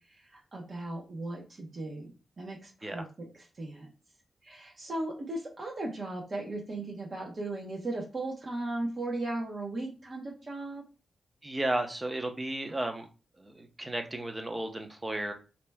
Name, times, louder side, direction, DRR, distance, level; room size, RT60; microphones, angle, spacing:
voice 1, 0.5-3.9 4.4-10.8, right 2 dB, 45° right, -2 dB, 0.9 m, -37 dB
voice 2, 11.4-13.1 13.4-15.3, right 1 dB, 15° right, 5 dB, 0.7 m, -34 dB
3.2 x 2.8 x 3.4 m, 0.33 s
wide cardioid pair, 115°, 0 cm